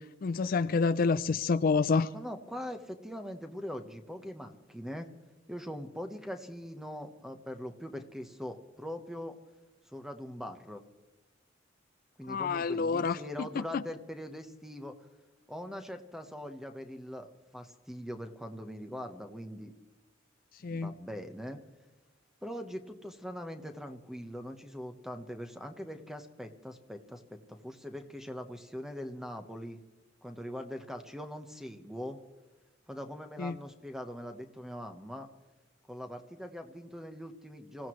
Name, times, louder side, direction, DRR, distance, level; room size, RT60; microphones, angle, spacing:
voice 1, 0.2-2.1 12.3-13.2 13.7-13.8 20.6-20.9 33.4-33.6, left 4 dB, 50° left, 0.4 m, -28 dB
voice 2, 2.1-5.1 5.5-9.4 9.9-10.8 12.2-14.9 15.5-19.7 20.6-21.6 22.4-29.8 30.2-32.2 32.9-35.3 35.9-37.9, equal, ahead, 1.1 m, -42 dB
26.0 x 16.0 x 3.1 m
head